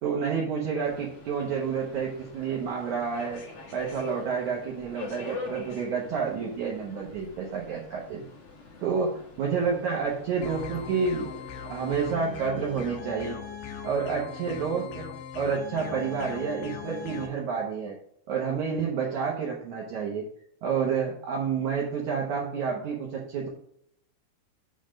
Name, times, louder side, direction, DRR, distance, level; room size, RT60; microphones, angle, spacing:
voice 1, 0.0-3.4 3.7-8.3 8.8-11.3 11.7-13.4 13.8-15.0 15.3-17.9 18.3-20.3 20.6-23.5, right 6 dB, 75° right, -2 dB, 1.7 m, -29 dB
Subway metro underground, 0.8-12.5, left 3 dB, 50° left, 1.7 m, -45 dB
sound 1, 10.4-17.3, left 6 dB, 75° left, 2.8 m, -40 dB
7.0 x 4.2 x 6.3 m, 0.68 s
omnidirectional pair, 5.0 m